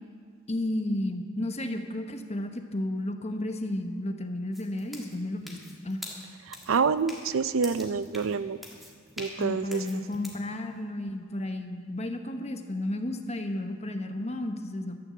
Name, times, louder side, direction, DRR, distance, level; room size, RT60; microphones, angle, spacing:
voice 1, 0.5-6.0 9.4-15.0, left 1 dB, 30° left, 6 dB, 1.0 m, -33 dB
sound 1, 4.5-10.4, left 1 dB, ahead, 2.0 m, -45 dB
voice 2, 6.5-8.6 9.2-10.0, right 5 dB, 80° right, 14 dB, 0.5 m, -27 dB
12.5 x 10.5 x 7.6 m, 2.1 s
head